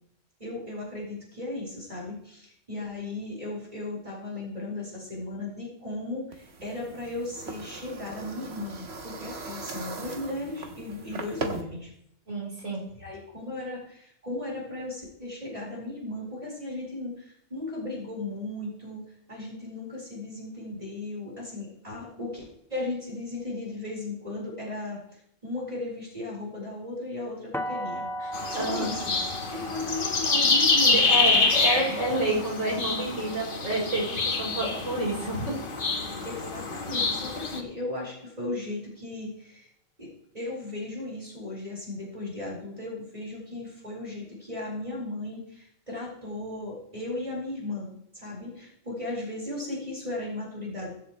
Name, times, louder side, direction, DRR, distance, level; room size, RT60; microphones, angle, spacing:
voice 1, 0.4-11.9 13.0-25.0 25.4-28.1 28.5-29.2 29.5-31.5 36.2-39.7 40.0-50.9, left 2 dB, 30° right, -4 dB, 4.6 m, -36 dB
sound 1, 6.3-11.6, right 3 dB, 55° right, 1.6 m, -39 dB
voice 2, 12.3-12.8 28.2-29.0 30.8-35.6, right 1 dB, 90° right, -4 dB, 5.0 m, -29 dB
sound 2, 27.5-33.4, equal, ahead, 1.0 m, -38 dB
sound 3, 28.3-37.6, left 3 dB, 45° left, 1.4 m, -26 dB
23.0 x 7.9 x 3.1 m, 0.73 s
omnidirectional pair, 1.3 m